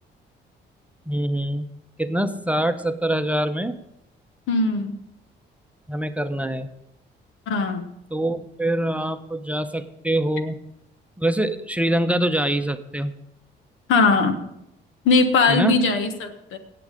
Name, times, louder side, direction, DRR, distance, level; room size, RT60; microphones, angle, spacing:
voice 1, 1.1-1.7 2.0-3.8 5.9-6.7 8.1-10.6 11.2-13.1 15.5-15.8, right 1 dB, 5° right, 8 dB, 0.8 m, -24 dB
voice 2, 4.5-4.9 7.5-7.9 13.9-14.4 15.0-16.6, left 3 dB, 85° left, 8 dB, 1.4 m, -20 dB
17.0 x 7.5 x 5.1 m, 0.83 s
cardioid pair, 90°, 20 cm